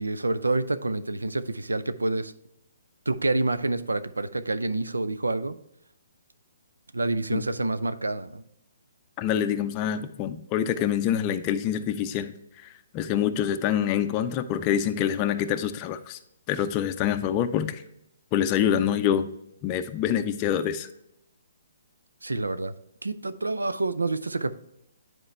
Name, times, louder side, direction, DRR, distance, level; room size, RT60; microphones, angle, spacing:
voice 1, 0.0-2.3 3.1-5.6 6.9-8.4 22.2-22.7 23.0-24.5, right 2 dB, 85° right, 13 dB, 0.5 m, -27 dB
voice 2, 9.2-16.2 16.5-17.8 18.3-19.3 19.6-20.9, left 9 dB, 30° left, 8 dB, 0.5 m, -26 dB
9.9 x 4.5 x 3.2 m, 0.79 s
figure-of-eight pair, 135°, 0 cm